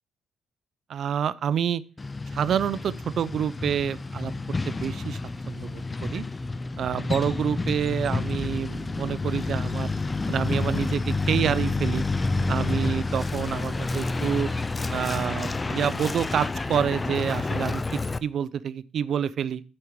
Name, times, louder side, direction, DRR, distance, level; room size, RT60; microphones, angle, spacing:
voice 1, 0.9-1.8 2.3-4.3 4.7-5.2 5.5-6.2 6.8-9.9 10.3-12.0 12.5-14.5 14.9-19.6, right 8 dB, 60° right, 17 dB, 0.6 m, -28 dB
Truck, 2.0-18.2, left 3 dB, 25° left, 0.5 m, -29 dB
8.6 x 4.7 x 7.2 m, 0.35 s
cardioid pair, 90°, 0 cm